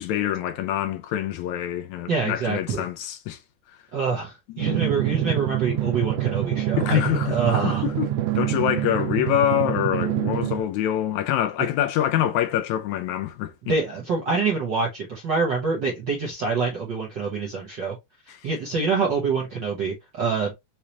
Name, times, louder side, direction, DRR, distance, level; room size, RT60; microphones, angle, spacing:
voice 1, 0.0-3.4 6.8-8.1 8.4-13.7 18.3-18.4, left 11 dB, 80° left, 1.8 m, -25 dB
voice 2, 2.1-2.8 3.9-7.8 13.6-17.9 18.3-20.5, right 4 dB, 65° right, 1.1 m, -26 dB
Drum, 4.6-10.6, right 12 dB, 80° right, 2.0 m, -26 dB
5.6 x 3.1 x 2.9 m
omnidirectional pair, 3.5 m